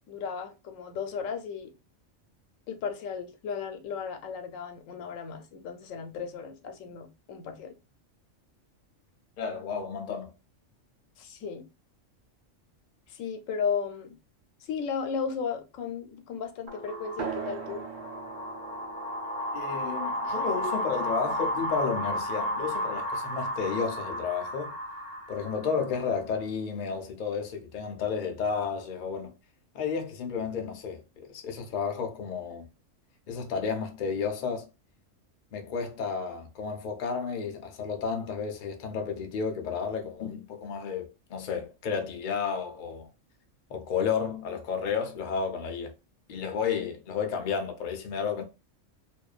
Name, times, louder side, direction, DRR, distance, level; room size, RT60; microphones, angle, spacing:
voice 1, 0.1-1.7 2.7-7.7 11.2-11.7 13.1-14.1 14.6-17.8, left 6 dB, 90° left, 1.0 m, -35 dB
voice 2, 9.4-10.3 19.5-24.7 25.3-29.3 29.7-32.7 33.3-34.7 35.5-43.1 43.7-45.9 46.3-48.4, left 6 dB, 55° left, 0.5 m, -32 dB
sound 1, 16.7-26.1, equal, 40° right, 0.7 m, -33 dB
sound 2, 17.2-22.2, right 7 dB, 75° right, 1.0 m, -42 dB
2.5 x 2.2 x 2.3 m
omnidirectional pair, 1.3 m